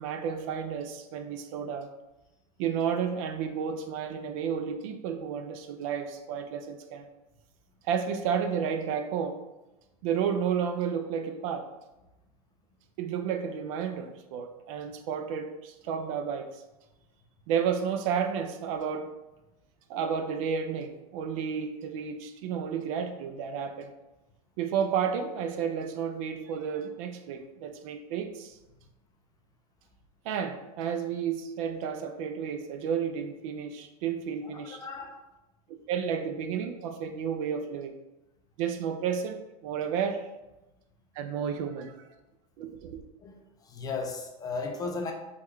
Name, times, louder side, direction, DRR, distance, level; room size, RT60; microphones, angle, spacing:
voice 1, 0.0-1.9 2.6-7.1 7.8-9.4 10.0-11.7 13.0-16.6 17.5-19.1 19.9-23.9 24.6-28.6 30.2-34.8 35.9-38.0 38.6-40.3 41.2-42.1 42.6-43.0, right 7 dB, 60° right, 7 dB, 0.4 m, -32 dB
voice 2, 34.4-35.2 43.2-43.3 43.6-45.1, left 4 dB, 20° left, 3 dB, 0.3 m, -35 dB
3.5 x 2.3 x 3.1 m, 1.0 s
supercardioid pair, 125°, 20 cm